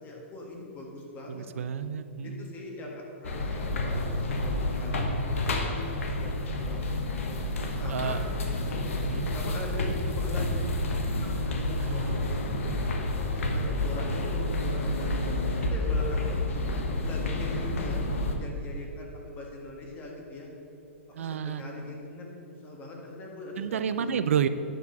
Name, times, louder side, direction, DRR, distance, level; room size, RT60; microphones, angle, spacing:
voice 1, 0.0-1.5 1.7-1.9 2.2-5.5 6.0-7.4 7.8-8.2 9.3-12.2 12.5-12.8 13.2-15.4 15.7-16.7 17.0-18.0 18.4-20.5 21.2-22.3 22.6-24.2, left 1 dB, 20° left, -1 dB, 1.6 m, -41 dB
voice 2, 1.3-2.5 7.9-8.2 9.0-9.3 11.8-12.2 21.1-21.6 23.6-24.5, right 8 dB, 75° right, 12 dB, 0.4 m, -30 dB
sound 1, 3.2-18.4, left 2 dB, 75° left, 1.2 m, -29 dB
9.3 x 4.7 x 6.8 m, 2.8 s
hypercardioid pair, 145°, 7 cm